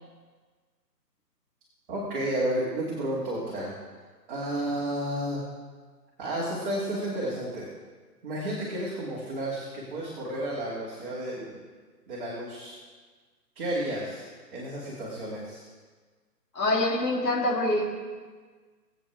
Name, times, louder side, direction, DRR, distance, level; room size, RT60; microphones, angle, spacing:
voice 1, 1.9-3.7 4.3-5.4 6.2-7.6 8.2-11.6 12.1-12.8 13.5-14.3 14.5-15.6, right 1 dB, 30° right, -7 dB, 2.8 m, -32 dB
voice 2, 16.5-17.8, left 1 dB, 75° left, -3 dB, 3.3 m, -25 dB
22.0 x 8.4 x 3.5 m, 1.4 s
hypercardioid pair, 160°, 50 cm